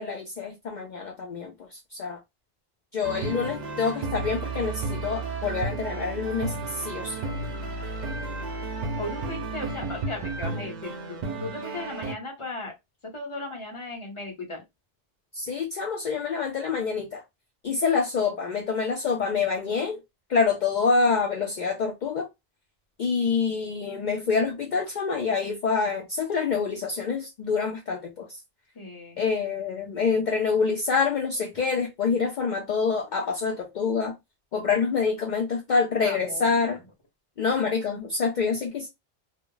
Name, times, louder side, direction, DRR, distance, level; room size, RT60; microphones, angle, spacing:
voice 1, 0.0-2.2 2.9-7.2 15.3-17.2 17.6-20.0 20.3-22.3 23.0-28.4 29.2-34.1 34.5-36.8 37.4-38.9, left 5 dB, 55° left, 0.6 m, -26 dB
sound 1, 3.0-12.1, right 3 dB, 55° right, 0.6 m, -33 dB
voice 2, 9.0-12.7 13.0-14.6 28.7-29.2 36.0-36.8, left 2 dB, 30° left, 1.0 m, -37 dB
2.3 x 2.0 x 3.7 m
omnidirectional pair, 1.1 m